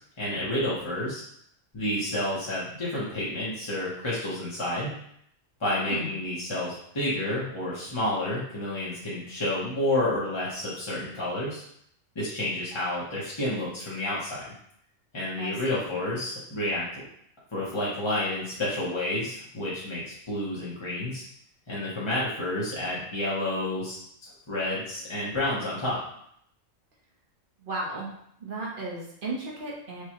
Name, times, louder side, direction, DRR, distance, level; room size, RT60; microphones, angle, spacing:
voice 1, 0.2-1.2 1.7-4.9 5.6-11.6 12.1-14.4 15.1-16.8 17.5-21.2 21.7-26.0, left 1 dB, 25° left, -8 dB, 0.8 m, -30 dB
voice 2, 15.4-15.9 27.6-28.1 28.4-30.0, right 2 dB, 45° right, -4 dB, 1.0 m, -34 dB
4.7 x 2.3 x 2.9 m, 0.69 s
omnidirectional pair, 1.4 m